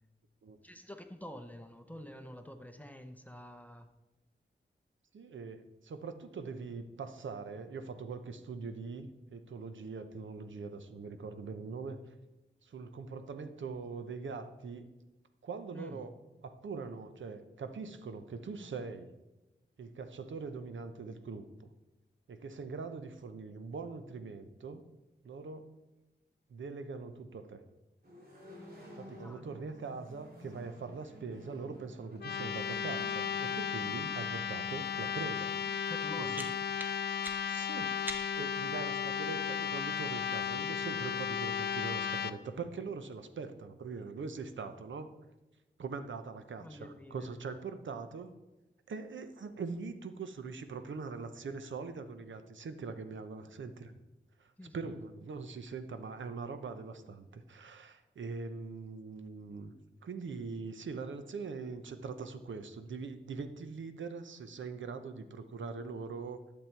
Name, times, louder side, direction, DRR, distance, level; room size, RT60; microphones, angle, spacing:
voice 1, 0.6-3.9 15.7-16.0 29.2-29.5 35.9-36.4 46.6-47.3 54.6-54.9, equal, 10° left, 7 dB, 0.7 m, -47 dB
voice 2, 5.1-12.1 12.6-14.9 15.4-16.1 16.4-19.1 19.8-21.7 22.3-24.8 25.2-25.6 26.5-27.6 29.0-35.5 36.2-36.4 37.4-45.1 45.8-48.3 48.9-53.9 54.4-59.7 60.0-66.4, right 4 dB, 90° right, 9 dB, 0.8 m, -42 dB
sound 1, 28.0-35.7, equal, 50° right, 2.7 m, -53 dB
sound 2, 32.1-42.3, left 7 dB, 60° left, 0.5 m, -35 dB
sound 3, 35.9-38.6, equal, 10° right, 1.1 m, -46 dB
11.5 x 7.3 x 4.6 m, 1.0 s
wide cardioid pair, 120°, 19 cm